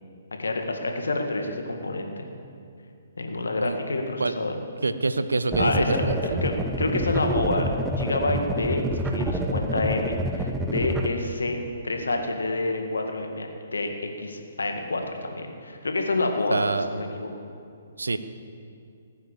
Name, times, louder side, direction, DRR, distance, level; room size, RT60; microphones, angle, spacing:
voice 1, 0.4-2.3 3.2-4.5 5.6-7.7 8.0-11.6 11.8-17.3, left 2 dB, 70° left, 4 dB, 1.9 m, -28 dB
voice 2, 4.8-6.4 16.5-16.9 18.0-18.2, right 3 dB, 75° right, 12 dB, 0.8 m, -26 dB
sound 1, 5.5-11.1, right 1 dB, 10° right, 0.9 m, -28 dB
18.0 x 9.5 x 7.3 m, 2.5 s
figure-of-eight pair, 125°, 0 cm